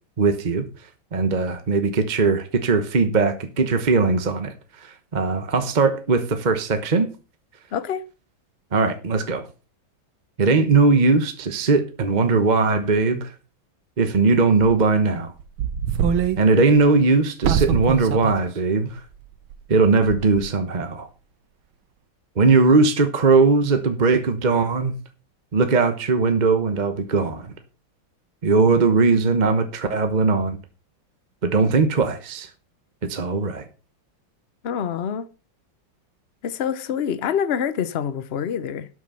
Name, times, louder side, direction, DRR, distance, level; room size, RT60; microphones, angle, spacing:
voice 1, 0.2-0.6 1.1-4.5 4.8-7.1 8.7-9.5 10.4-13.3 14.0-15.3 16.4-19.0 19.7-21.1 22.4-24.9 25.5-27.5 28.4-30.6 31.4-32.5 33.0-33.6, right 4 dB, 35° right, 0.8 m, -19 dB
voice 2, 7.7-8.0 34.6-35.3 36.4-38.9, left 8 dB, 85° left, 0.5 m, -26 dB
sound 1, 14.6-14.8 15.4-16.4 16.8-16.9 17.4-18.3 18.7-18.8 19.5-19.8 20.1-20.4, right 8 dB, 90° right, 1.8 m, -23 dB
12.0 x 6.3 x 5.6 m
omnidirectional pair, 2.2 m